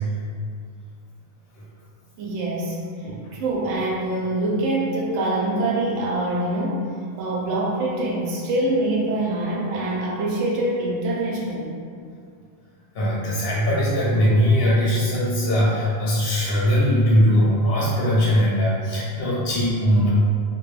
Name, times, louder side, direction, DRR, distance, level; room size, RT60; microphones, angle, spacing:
voice 1, 2.2-2.8 3.3-6.9 7.2-11.8, right 1 dB, 80° right, -3 dB, 0.9 m, -24 dB
voice 2, 12.9-20.1, equal, 60° left, -7 dB, 0.7 m, -20 dB
2.3 x 2.1 x 3.0 m, 2.2 s
omnidirectional pair, 1.3 m